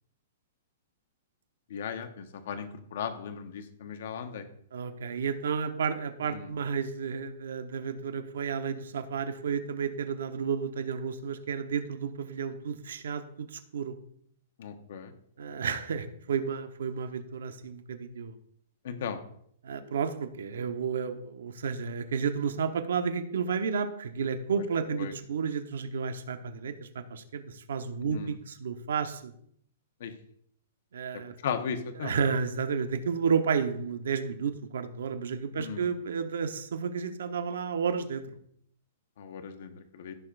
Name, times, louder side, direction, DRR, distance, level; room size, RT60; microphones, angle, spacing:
voice 1, 1.7-4.4 6.2-6.5 14.6-15.1 15.5-15.7 18.8-19.2 24.9-25.1 28.0-28.3 30.0-30.1 31.4-32.1 35.6-35.9 39.2-40.1, left 7 dB, 50° left, 7 dB, 1.1 m, -37 dB
voice 2, 4.7-13.9 15.4-18.3 19.6-29.3 30.9-31.3 32.0-38.2, right 6 dB, 85° right, 8 dB, 1.0 m, -32 dB
15.0 x 6.9 x 2.5 m, 0.66 s
hypercardioid pair, 180°, 0 cm